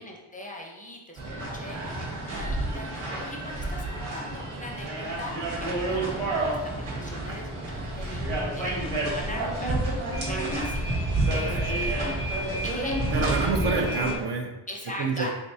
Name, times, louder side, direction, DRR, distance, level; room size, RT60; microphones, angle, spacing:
voice 1, 0.0-9.8 10.3-12.9 14.7-15.3, left 1 dB, 15° left, 0 dB, 0.5 m, -41 dB
sound 1, 1.2-14.2, right 1 dB, 80° right, 1.4 m, -29 dB
voice 2, 13.1-14.5 15.0-15.3, right 4 dB, 55° right, 4 dB, 0.6 m, -27 dB
4.0 x 3.4 x 2.7 m, 1.1 s
wide cardioid pair, 130°, 49 cm